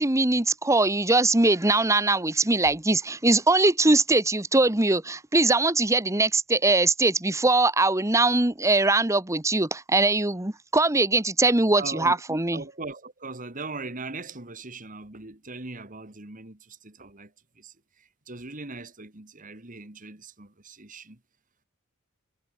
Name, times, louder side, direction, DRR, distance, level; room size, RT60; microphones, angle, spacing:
voice 1, 0.0-12.6, right 2 dB, 15° right, 1.1 m, -22 dB
voice 2, 11.7-21.2, right 3 dB, 40° right, 2.5 m, -40 dB
head